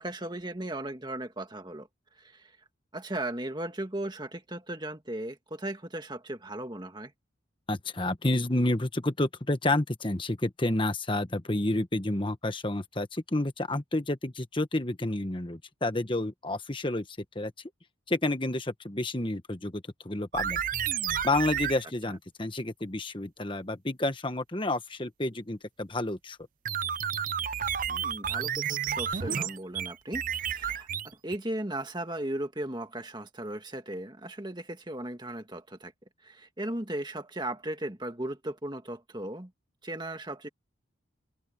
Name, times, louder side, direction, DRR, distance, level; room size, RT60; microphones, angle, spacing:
voice 1, 0.0-1.9 2.2-2.5 2.9-7.1 22.1-22.2 27.9-35.9 36.2-39.5 39.8-40.5, right 1 dB, 20° right, 1.9 m, -37 dB
voice 2, 7.7-17.1 17.3-17.5 18.1-20.6 21.2-26.4, left 2 dB, 25° left, 1.3 m, -30 dB
sound 1, 20.3-21.8 26.7-31.4, right 8 dB, 40° right, 0.6 m, -31 dB
head